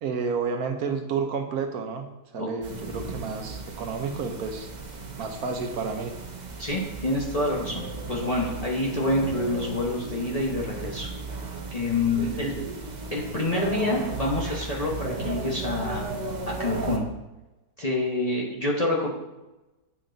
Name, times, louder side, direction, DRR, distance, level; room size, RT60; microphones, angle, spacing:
voice 1, 0.0-2.1 2.3-4.7 5.2-6.1 12.2-12.7, right 5 dB, 70° right, 5 dB, 1.2 m, -31 dB
sound 1, 2.6-17.0, right 3 dB, 40° right, 0.7 m, -35 dB
voice 2, 6.6-11.1 11.7-12.5 13.1-16.1 16.4-17.1 17.8-19.1, left 2 dB, 30° left, -3 dB, 0.8 m, -27 dB
8.8 x 5.4 x 3.9 m, 1.0 s
omnidirectional pair, 1.8 m